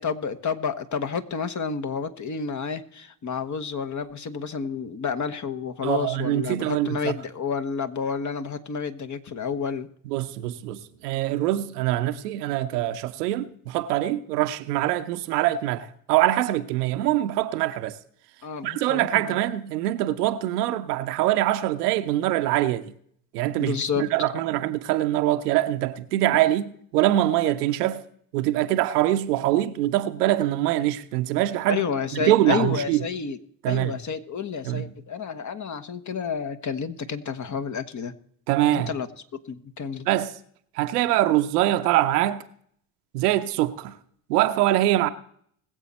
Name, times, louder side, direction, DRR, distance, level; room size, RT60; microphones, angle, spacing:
voice 1, 0.0-9.9 18.4-19.4 23.5-24.3 31.7-33.4 33.7-38.1 38.7-39.1 39.4-40.1, left 6 dB, 40° left, 1.2 m, -30 dB
voice 2, 5.8-7.1 10.1-18.0 18.6-22.9 23.3-28.0 28.3-31.9 32.2-33.0 33.6-33.9 34.6-34.9 38.5-38.9 40.1-40.3 40.8-42.4 43.1-43.9 44.3-45.1, right 14 dB, 85° right, 0.8 m, -24 dB
21.0 x 7.6 x 4.2 m
hypercardioid pair, 60°, 46 cm